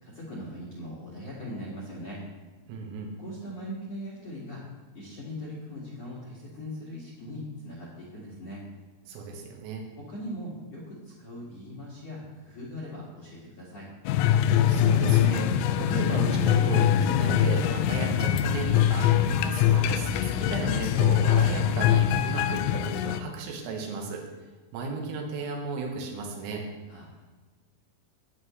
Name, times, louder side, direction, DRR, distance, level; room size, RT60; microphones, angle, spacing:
voice 1, 0.0-2.2 3.2-8.6 10.0-13.9 26.9-27.0, equal, 50° left, -5 dB, 2.0 m, -40 dB
voice 2, 2.7-3.1 9.1-9.8 14.4-24.2 24.7-26.6, right 4 dB, 90° right, 1 dB, 4.1 m, -35 dB
sound 1, 14.1-23.2, left 10 dB, 85° left, 3.1 m, -23 dB
14.5 x 9.3 x 3.2 m, 1.3 s
omnidirectional pair, 5.9 m